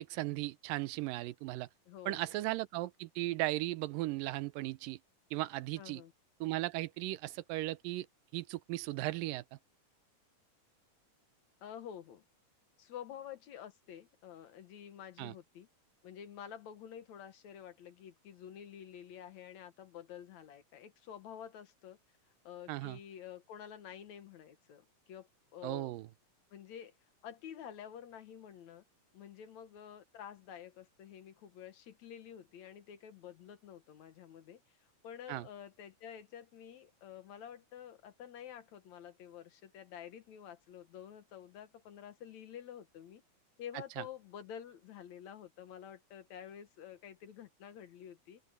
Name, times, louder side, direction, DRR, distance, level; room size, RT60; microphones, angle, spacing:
voice 1, 0.0-1.7 2.1-5.0 5.3-6.0 6.4-8.1 8.3-9.6 15.2-15.3 22.7-23.0 25.6-26.1 35.3-35.5 44.0-44.1, right 18 dB, 85° right, 2.4 m, -37 dB
voice 2, 1.9-2.2 5.8-6.1 11.6-12.2 12.8-15.7 16.0-22.0 22.4-25.9 26.5-26.9 27.2-28.8 29.1-34.6 35.0-43.2 43.6-48.4, left 9 dB, 65° left, 2.3 m, -49 dB
open air
omnidirectional pair, 3.8 m